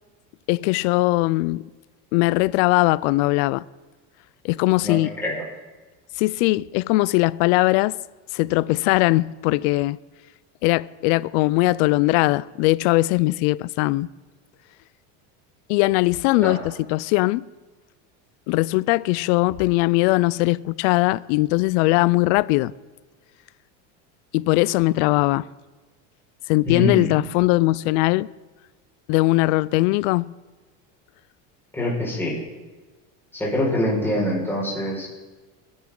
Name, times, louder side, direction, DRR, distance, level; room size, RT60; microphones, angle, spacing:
voice 1, 0.5-1.7 2.1-3.6 4.4-5.1 6.2-8.0 8.3-10.0 10.6-14.1 15.7-17.4 18.5-22.7 24.3-25.5 26.5-28.3 29.1-30.3, left 20 dB, 70° left, 0.5 m, -20 dB
voice 2, 4.8-5.4 16.4-16.7 26.6-27.2 31.7-32.4 33.3-35.1, left 1 dB, 5° left, 5.2 m, -24 dB
22.0 x 10.5 x 3.9 m
cardioid pair, 135°, 35 cm